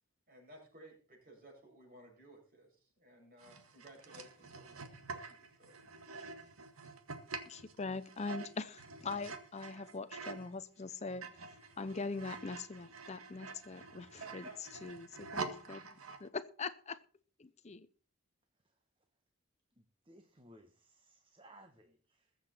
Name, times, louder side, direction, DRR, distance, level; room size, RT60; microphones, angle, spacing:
voice 1, 0.3-5.8 14.2-14.6, right 1 dB, 40° right, -1 dB, 7.5 m, -56 dB
sound 1, 3.4-10.5 10.9-16.3, right 4 dB, 80° right, 1.8 m, -47 dB
voice 2, 7.5-11.4 11.8-14.4 14.8-15.9 16.2-17.0 17.4-17.9, left 4 dB, 30° left, 13 dB, 0.6 m, -42 dB
voice 3, 19.8-22.4, right 1 dB, 25° right, 6 dB, 1.2 m, -61 dB
21.0 x 7.8 x 4.4 m, 0.40 s
head